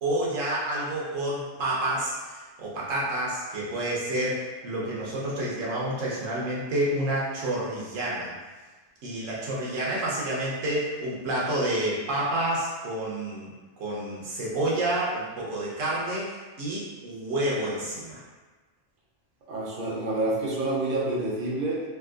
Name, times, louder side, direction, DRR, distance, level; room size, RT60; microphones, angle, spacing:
voice 1, 0.0-8.3 9.0-13.5 13.8-18.2, right 1 dB, 85° right, -5 dB, 1.2 m, -29 dB
voice 2, 19.5-21.8, right 2 dB, 50° right, -5 dB, 0.8 m, -28 dB
3.5 x 2.6 x 2.4 m, 1.3 s
omnidirectional pair, 1.3 m